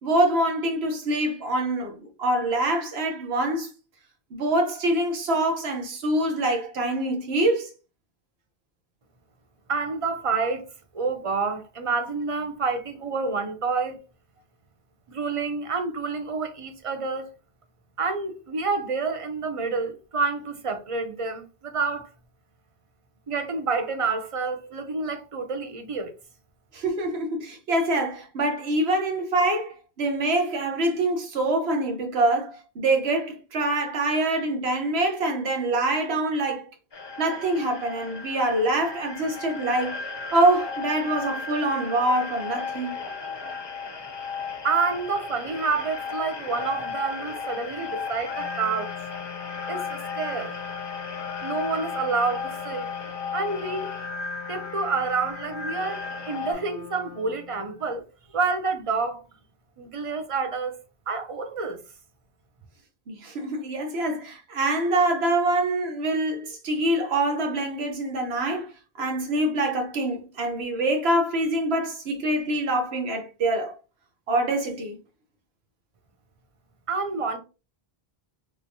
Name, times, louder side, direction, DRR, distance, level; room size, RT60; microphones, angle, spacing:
voice 1, 0.0-3.7 4.3-7.7 26.7-36.7 37.2-40.0 40.3-43.0 63.1-68.7 69.0-73.8 74.3-75.0, right 1 dB, 85° right, 1.1 m, -25 dB
voice 2, 9.7-10.7 10.9-14.0 15.1-17.3 18.0-22.1 23.3-26.1 44.6-48.9 49.7-50.5 51.4-52.9 53.3-53.9 54.5-58.0 58.3-59.2 59.8-61.8 76.9-77.4, right 4 dB, 40° right, 0.5 m, -28 dB
sound 1, 36.9-56.5, left 5 dB, 30° left, 0.5 m, -35 dB
Wind instrument woodwind instrument, 48.3-57.9, left 8 dB, 65° left, 0.7 m, -40 dB
3.2 x 3.1 x 2.6 m
omnidirectional pair, 1.1 m